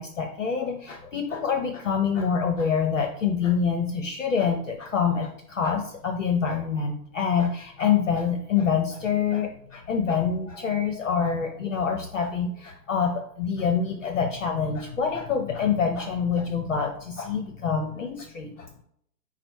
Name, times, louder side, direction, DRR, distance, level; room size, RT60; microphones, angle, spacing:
voice 1, 0.0-18.7, left 6 dB, 50° left, 4 dB, 0.6 m, -26 dB
5.3 x 2.0 x 4.5 m, 0.69 s
hypercardioid pair, 165°, 50 cm